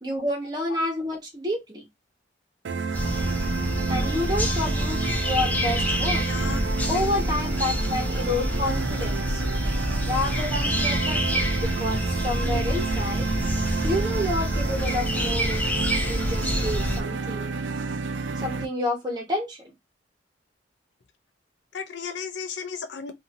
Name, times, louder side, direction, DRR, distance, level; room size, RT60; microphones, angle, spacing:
voice 1, 0.0-1.9 3.9-6.2 6.9-9.4 10.0-13.3 13.8-15.6 15.9-17.6 18.4-19.7, left 1 dB, 20° right, 1.1 m, -29 dB
sound 1, 2.6-18.7, right 4 dB, 70° right, 0.4 m, -30 dB
sound 2, 2.9-17.0, equal, 10° left, 0.4 m, -27 dB
voice 2, 6.2-6.6 6.9-7.2 21.7-23.1, left 6 dB, 65° left, 0.5 m, -34 dB
2.7 x 2.6 x 2.7 m
head